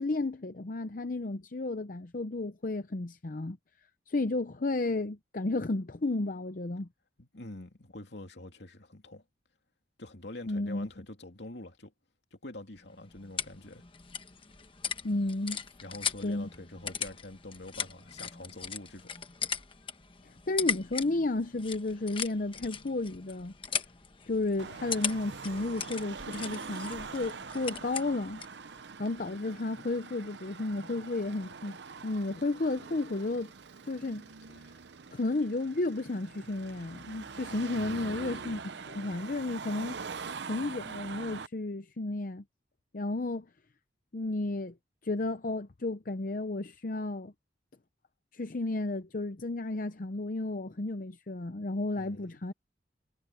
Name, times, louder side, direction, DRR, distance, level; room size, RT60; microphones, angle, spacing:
voice 1, 0.0-3.6 4.1-6.9 10.5-10.9 15.0-15.6 16.2-16.5 20.2-23.6 24.3-28.4 29.0-31.8 32.0-33.5 33.8-34.3 34.6-34.7 35.1-40.0 40.5-42.4 42.9-43.5 44.1-44.8 45.0-47.3 48.3-52.5, left 2 dB, 45° left, 0.7 m, -33 dB
voice 2, 7.2-9.2 10.0-11.9 12.3-13.9 15.8-19.1 37.7-38.5 52.0-52.4, left 1 dB, 65° left, 2.9 m, -45 dB
sound 1, 12.8-28.6, left 7 dB, 30° left, 1.1 m, -39 dB
Car passing by / Traffic noise roadway noise / Engine, 24.6-41.5, right 5 dB, 70° right, 0.8 m, -44 dB
head